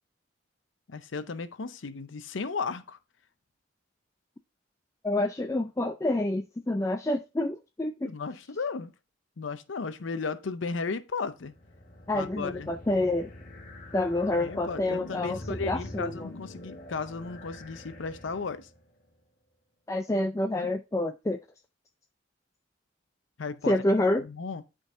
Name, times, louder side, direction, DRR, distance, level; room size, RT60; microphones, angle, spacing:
voice 1, 0.9-3.0 8.0-8.9 9.4-11.5 12.1-12.7 14.4-18.7 20.6-20.7 23.4-23.7 24.2-24.6, left 4 dB, 75° left, 0.6 m, -35 dB
voice 2, 5.0-8.1 12.1-13.3 13.9-16.3 19.9-21.4 23.7-24.3, left 1 dB, 15° left, 0.3 m, -28 dB
sound 1, 11.5-18.8, left 1 dB, 45° left, 1.3 m, -44 dB
10.5 x 3.9 x 3.7 m
head